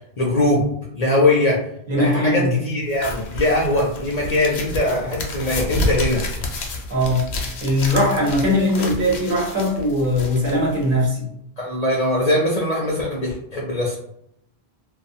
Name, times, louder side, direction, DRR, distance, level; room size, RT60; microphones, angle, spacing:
voice 1, 0.2-0.6 0.9-1.6 2.0-6.2 11.6-14.0, left 1 dB, 50° left, -3 dB, 0.5 m, -21 dB
voice 2, 1.9-2.6 6.9-11.3, left 1 dB, 55° right, -4 dB, 1.1 m, -20 dB
sound 1, 2.9-11.1, left 2 dB, 80° left, 0.9 m, -30 dB
2.5 x 2.3 x 2.6 m, 0.74 s
omnidirectional pair, 1.1 m